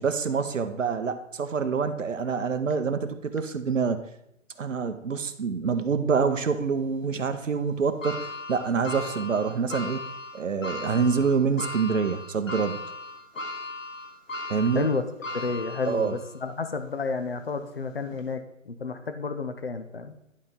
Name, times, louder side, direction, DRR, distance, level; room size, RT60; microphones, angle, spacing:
voice 1, 0.0-4.1 4.6-10.1 10.3-12.8 14.5-14.9 15.9-16.1, right 5 dB, 70° right, 9 dB, 0.9 m, -26 dB
sound 1, 8.0-16.4 16.9-17.0 18.1-18.2, left 2 dB, 70° left, 1.4 m, -37 dB
voice 2, 15.3-20.2, left 4 dB, 50° left, 9 dB, 0.7 m, -31 dB
11.0 x 4.2 x 3.7 m, 0.79 s
hypercardioid pair, 175°, 40 cm